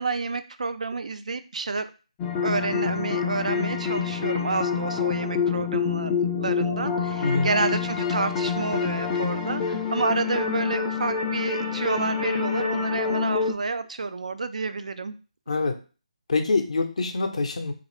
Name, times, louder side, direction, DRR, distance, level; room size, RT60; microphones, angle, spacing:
voice 1, 0.0-1.9 2.4-15.1, right 3 dB, 75° right, 10 dB, 0.3 m, -29 dB
sound 1, 2.2-13.5, left 6 dB, 10° left, 0.3 m, -27 dB
voice 2, 16.3-17.7, left 3 dB, 65° left, 5 dB, 0.6 m, -25 dB
3.2 x 2.5 x 3.1 m, 0.35 s
figure-of-eight pair, 160°, 4 cm